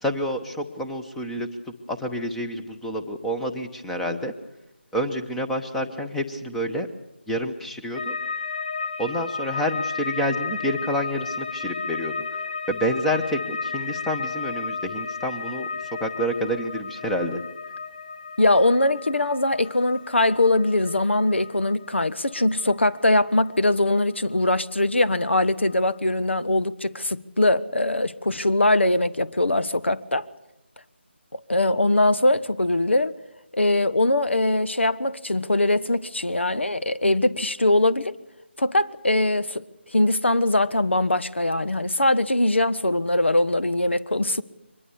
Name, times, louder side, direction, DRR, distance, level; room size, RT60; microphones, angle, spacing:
voice 1, 0.0-1.5 1.9-4.3 4.9-6.9 7.3-8.2 9.0-12.2 12.7-15.7 16.0-17.4, equal, 5° left, 0.9 m, -28 dB
sound 1, 7.9-25.1 25.3-26.1, left 5 dB, 50° left, 2.0 m, -34 dB
voice 2, 18.4-30.3 31.3-33.1 33.5-38.1 38.6-39.6 39.9-44.4, left 2 dB, 80° left, 1.2 m, -22 dB
23.5 x 21.0 x 7.1 m
figure-of-eight pair, 160°, 6 cm